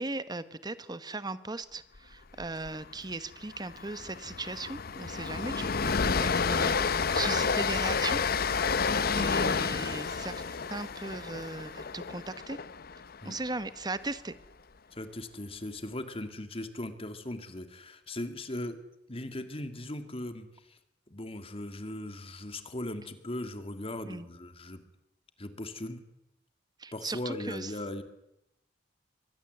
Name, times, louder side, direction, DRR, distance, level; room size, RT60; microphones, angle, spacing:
voice 1, 0.0-8.2 9.2-12.6 13.2-14.3 24.0-24.3 26.8-27.7, right 3 dB, 25° right, 13 dB, 1.1 m, -38 dB
Train, 2.4-2.7 3.0-3.1 3.5-13.6, left 5 dB, 55° left, 0.8 m, -30 dB
voice 2, 9.4-9.7 13.2-13.4 14.9-18.8 19.1-20.8 21.1-24.8 25.4-26.0 26.9-28.0, left 1 dB, 30° left, 8 dB, 2.1 m, -39 dB
24.0 x 19.5 x 8.0 m, 0.84 s
head